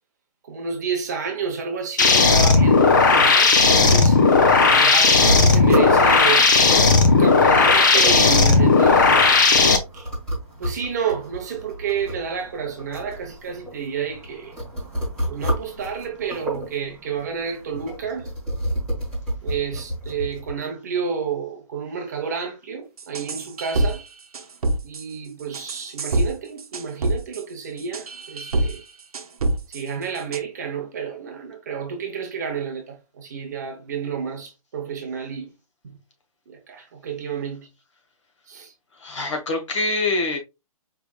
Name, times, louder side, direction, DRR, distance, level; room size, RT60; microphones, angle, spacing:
voice 1, 0.4-4.2 4.6-6.5 7.0-9.4 9.9-10.1 10.6-14.6 15.3-18.3 19.4-24.0 24.8-28.8 29.7-35.5 36.5-37.7 38.5-38.7, right 6 dB, 30° right, 0.8 m, -30 dB
sound 1, 2.0-9.8, left 4 dB, 30° left, 0.6 m, -15 dB
sound 2, 5.1-20.5, equal, 5° left, 1.6 m, -31 dB
sound 3, 23.0-24.0 24.3-25.0 25.5-26.3 26.6-27.4 27.8-28.8 29.1-29.8 30.2-30.4, right 2 dB, 80° right, 0.9 m, -24 dB
voice 2, 39.0-40.4, left 2 dB, 55° left, 1.5 m, -24 dB
4.7 x 3.3 x 2.3 m
hypercardioid pair, 175°, 19 cm